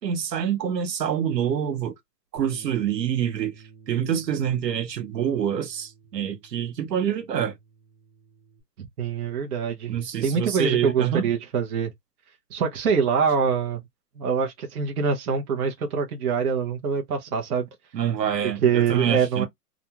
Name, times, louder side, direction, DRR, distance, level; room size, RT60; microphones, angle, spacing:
voice 1, 0.0-1.9 2.3-3.5 3.9-7.6 9.9-11.3 17.9-19.5, right 9 dB, 80° right, 1.1 m, -26 dB
Bass guitar, 2.4-8.6, right 5 dB, 20° right, 0.9 m, -52 dB
voice 2, 8.8-10.0 10.2-11.9 12.5-13.8 14.2-17.7 18.6-19.5, right 6 dB, 60° right, 0.9 m, -24 dB
2.5 x 2.3 x 2.9 m
hypercardioid pair, 155°, 49 cm